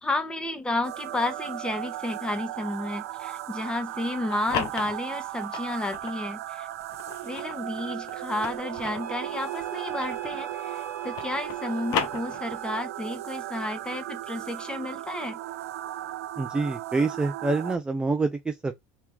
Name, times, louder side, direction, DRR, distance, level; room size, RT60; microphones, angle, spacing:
voice 1, 0.0-6.7 7.2-15.4, left 2 dB, 10° left, 0.9 m, -32 dB
sound 1, 0.8-17.8, right 14 dB, 85° right, 0.4 m, -36 dB
sound 2, 4.1-6.2 6.8-10.5 10.8-12.8, left 7 dB, 55° left, 0.8 m, -35 dB
Wind instrument woodwind instrument, 9.0-12.9, right 10 dB, 35° right, 1.0 m, -40 dB
voice 2, 16.4-18.7, right 3 dB, 10° right, 0.4 m, -26 dB
3.0 x 2.9 x 3.5 m
supercardioid pair, 105°, 8 cm